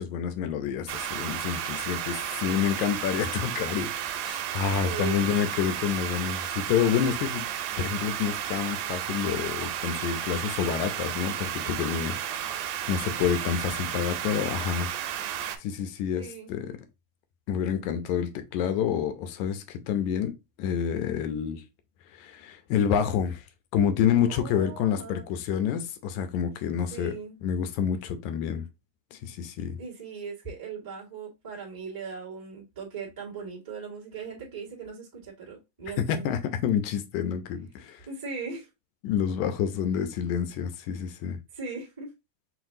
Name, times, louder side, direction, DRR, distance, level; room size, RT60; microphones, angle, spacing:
voice 1, 0.0-7.5 7.8-14.9 15.3-16.8 17.5-21.6 22.1-23.4 23.7-27.1 27.4-28.7 29.1-29.8 36.1-38.1 39.0-41.4, left 8 dB, 80° left, 2.0 m, -28 dB
sound 1, 0.9-15.6, right 10 dB, 85° right, 2.0 m, -33 dB
voice 2, 4.8-5.3 16.1-16.5 24.3-25.3 26.9-27.4 29.8-36.3 38.1-38.7 41.5-42.1, right 5 dB, 10° right, 1.0 m, -39 dB
5.9 x 2.5 x 2.6 m
omnidirectional pair, 3.4 m